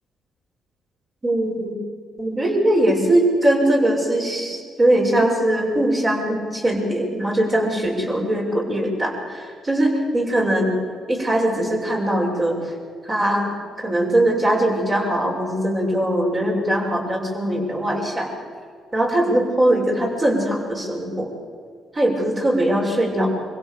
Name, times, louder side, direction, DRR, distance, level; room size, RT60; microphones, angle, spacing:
voice 1, 1.2-1.7 2.2-10.7 11.1-12.7 13.0-13.5 13.8-18.3 18.9-21.3 21.9-23.3, right 1 dB, 30° right, -1 dB, 7.1 m, -21 dB
26.0 x 16.5 x 7.2 m, 2.2 s
cardioid pair, 90°, 0 cm